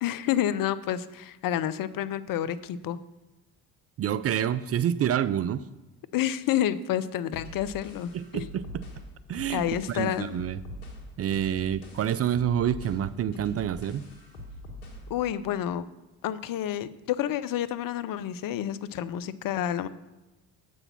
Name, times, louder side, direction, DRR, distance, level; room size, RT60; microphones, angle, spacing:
voice 1, 0.0-3.0 6.1-8.5 9.5-10.4 15.1-15.8 16.2-19.9, left 11 dB, 50° left, 15 dB, 0.6 m, -29 dB
voice 2, 4.0-5.7 8.1-8.8 9.3-10.6 11.2-14.1, right 9 dB, 35° right, 15 dB, 0.4 m, -28 dB
sound 1, 7.3-15.1, left 1 dB, 85° left, 1.8 m, -43 dB
7.8 x 6.2 x 5.8 m, 1.1 s
hypercardioid pair, 55°, 43 cm